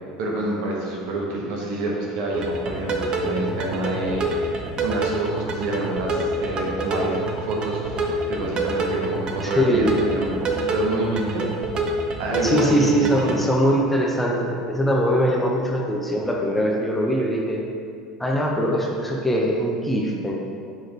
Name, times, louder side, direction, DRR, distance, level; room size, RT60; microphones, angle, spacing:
voice 1, 0.2-11.5 12.2-13.4, right 1 dB, 60° right, -2 dB, 1.3 m, -28 dB
sound 1, 2.3-13.3, right 2 dB, 40° right, 0.8 m, -27 dB
voice 2, 9.4-10.0 12.4-17.6 18.2-20.4, equal, 5° left, -2 dB, 0.9 m, -22 dB
6.4 x 4.9 x 3.4 m, 2.3 s
hypercardioid pair, 75°, 2 cm